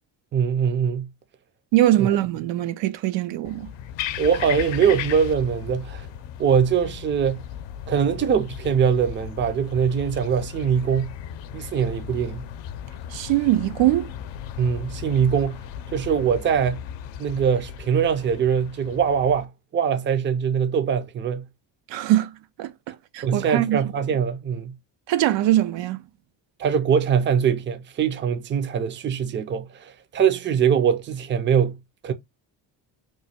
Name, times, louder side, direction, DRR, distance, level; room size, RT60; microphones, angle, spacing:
voice 1, 0.3-1.1 2.0-2.1 4.2-6.1 6.4-7.4 7.9-11.1 11.5-12.5 14.6-15.6 15.9-16.8 17.2-21.5 23.2-24.7 26.6-31.8 32.0-32.1, right 7 dB, 25° right, 0.5 m, -22 dB
voice 2, 1.7-3.7 13.1-14.1 21.9-22.3 22.6-23.8 25.1-26.0, right 14 dB, 80° right, 0.6 m, -22 dB
sound 1, 3.4-19.5, left 10 dB, 75° left, 0.6 m, -36 dB
3.1 x 2.2 x 4.2 m
cardioid pair, 120°, 45 cm